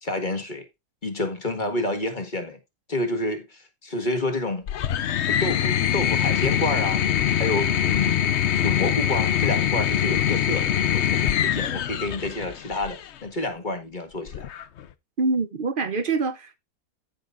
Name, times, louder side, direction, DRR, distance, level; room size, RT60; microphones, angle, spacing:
voice 1, 0.0-0.7 1.0-2.6 2.9-4.7 5.3-7.0 7.4-14.5, left 2 dB, 25° left, 1.7 m, -29 dB
sound 1, 4.7-13.1 14.3-14.9, left 9 dB, 75° left, 0.6 m, -23 dB
voice 2, 15.2-16.6, right 3 dB, 50° right, 0.6 m, -25 dB
14.5 x 5.9 x 2.5 m
omnidirectional pair, 2.0 m